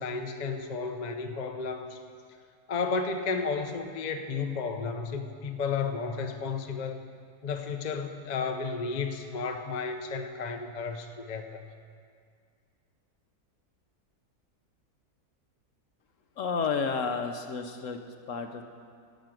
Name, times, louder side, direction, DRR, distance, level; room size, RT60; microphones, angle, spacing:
voice 1, 0.0-2.0 2.7-7.0 7.4-11.6, left 5 dB, 40° left, 5 dB, 0.6 m, -33 dB
voice 2, 16.4-18.0 18.3-18.6, left 5 dB, 60° left, 6 dB, 1.0 m, -31 dB
14.5 x 6.3 x 9.1 m, 2.2 s
omnidirectional pair, 1.7 m